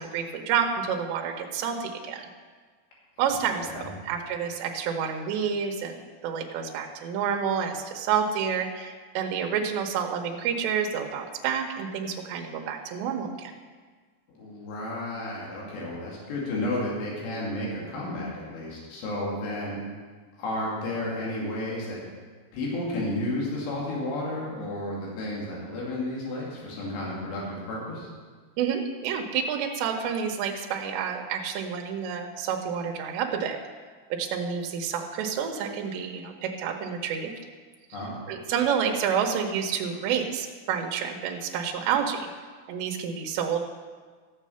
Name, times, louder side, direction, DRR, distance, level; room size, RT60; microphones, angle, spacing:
voice 1, 0.0-2.3 3.2-6.0 6.2-13.5 28.6-33.6 34.1-37.3 38.3-42.3 42.7-43.6, right 7 dB, 85° right, 2 dB, 3.1 m, -29 dB
voice 2, 14.3-19.8 20.4-22.0 22.5-28.1 37.9-38.2, left 1 dB, 75° left, -5 dB, 4.7 m, -32 dB
14.5 x 7.4 x 5.6 m, 1.5 s
omnidirectional pair, 5.0 m